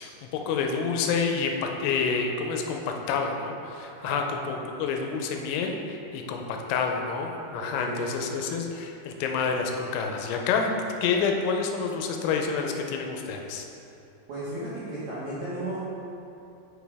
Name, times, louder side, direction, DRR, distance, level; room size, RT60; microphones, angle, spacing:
voice 1, 0.0-2.8 3.1-10.7 11.0-13.7, left 5 dB, 85° left, 3 dB, 2.9 m, -28 dB
voice 2, 3.9-4.2 7.6-8.4 14.3-15.8, right 1 dB, 85° right, -10 dB, 1.5 m, -35 dB
7.2 x 6.4 x 3.4 m, 2.8 s
omnidirectional pair, 5.4 m